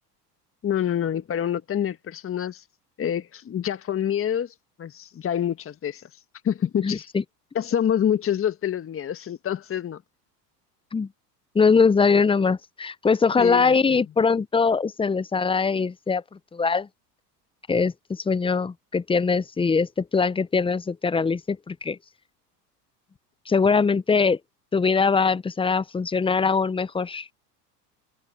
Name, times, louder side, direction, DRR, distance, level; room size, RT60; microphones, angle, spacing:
voice 1, 0.6-2.6 3.0-6.1 6.4-7.1 7.6-10.0 13.4-14.0, left 9 dB, 25° left, 1.6 m, -27 dB
voice 2, 6.8-7.2 10.9-11.1 11.5-16.2 16.5-16.9 17.7-22.0 23.5-24.4 24.7-27.3, left 5 dB, 10° left, 0.7 m, -22 dB
hypercardioid pair, 90°, 49 cm